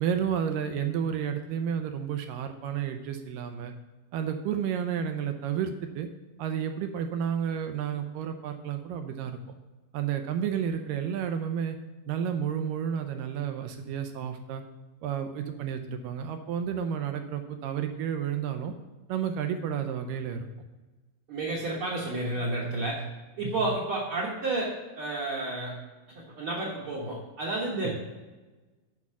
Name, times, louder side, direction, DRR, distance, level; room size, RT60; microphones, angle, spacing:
voice 1, 0.0-3.7 4.1-6.1 6.4-9.4 9.9-11.8 12.1-14.6 15.0-18.7 19.1-20.5 23.4-23.7 27.8-28.0, right 8 dB, 80° right, 6 dB, 2.1 m, -31 dB
voice 2, 21.3-23.0 23.4-25.7 26.1-28.0, right 2 dB, 55° right, -4 dB, 1.5 m, -31 dB
8.4 x 5.4 x 5.9 m, 1.2 s
omnidirectional pair, 4.3 m